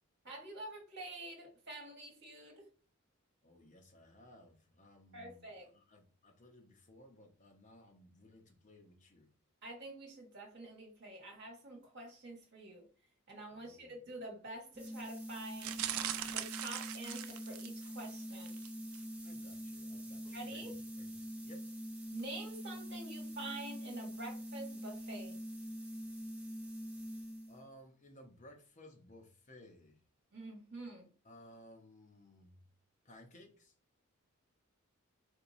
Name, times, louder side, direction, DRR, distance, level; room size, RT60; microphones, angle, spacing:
voice 1, 0.2-2.6 5.1-5.7 9.6-12.9 13.3-15.8 16.3-18.6 20.2-20.7 22.1-25.4 30.3-31.1, right 2 dB, 55° right, 1.4 m, -47 dB
voice 2, 3.4-9.3 13.5-14.0 19.2-21.7 27.5-30.0 31.2-32.6 33.0-33.7, left 1 dB, 35° left, 0.8 m, -59 dB
sound 1, 14.7-27.7, equal, 5° right, 0.5 m, -45 dB
sound 2, 15.6-17.9 18.4-18.7 18.9-19.0, right 11 dB, 90° right, 0.4 m, -40 dB
4.5 x 2.8 x 2.6 m
head